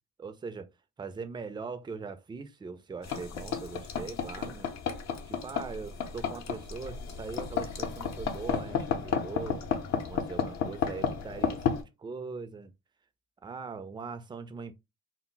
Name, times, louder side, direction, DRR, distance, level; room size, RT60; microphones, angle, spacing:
voice 1, 0.2-0.7 1.0-4.7 5.3-9.6 10.0-12.7 13.4-14.7, right 4 dB, 15° right, 0.4 m, -41 dB
sound 1, 3.0-11.8, left 7 dB, 65° left, 0.7 m, -32 dB
2.2 x 2.1 x 3.8 m
cardioid pair, 90°, 30 cm